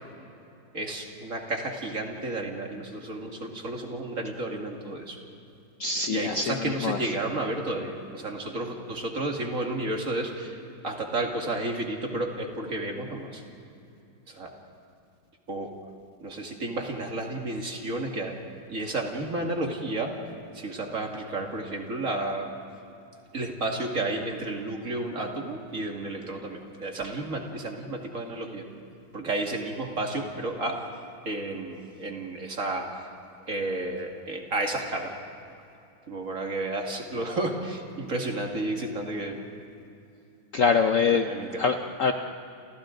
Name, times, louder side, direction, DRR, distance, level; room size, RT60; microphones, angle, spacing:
voice 1, 0.7-5.2 6.1-10.6 10.8-13.4 14.3-14.5 15.5-15.8 16.2-18.4 18.7-20.1 20.5-22.5 23.3-28.7 29.1-33.1 33.5-35.1 36.1-39.4 41.1-41.6, right 2 dB, 45° right, 1 dB, 2.5 m, -32 dB
voice 2, 5.8-7.0 40.5-41.3 41.6-42.1, left 5 dB, 55° left, 5 dB, 0.9 m, -24 dB
29.0 x 28.5 x 3.9 m, 2.7 s
omnidirectional pair, 2.0 m